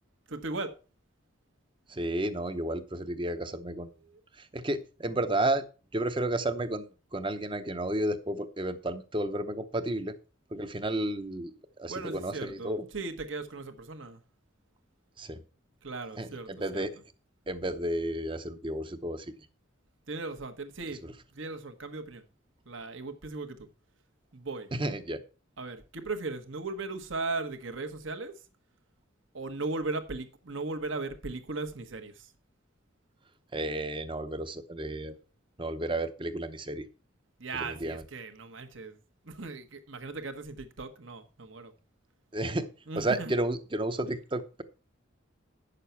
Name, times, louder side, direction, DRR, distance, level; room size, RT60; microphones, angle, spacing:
voice 1, 0.3-0.7 4.1-4.2 11.9-14.2 15.8-16.8 20.1-21.0 21.3-22.2 22.6-23.7 24.3-24.7 25.6-28.3 29.3-32.3 37.4-39.0 39.2-41.7 42.9-43.3, right 3 dB, 70° right, 1.3 m, -37 dB
voice 2, 1.9-3.9 4.4-5.7 5.9-10.2 10.5-12.9 15.2-15.4 16.2-17.0 17.5-19.3 21.0-21.1 24.7-25.2 33.5-35.2 35.6-36.9 37.6-38.0 42.3-42.7 42.9-44.6, right 1 dB, 25° right, 0.7 m, -32 dB
9.2 x 6.7 x 5.6 m
head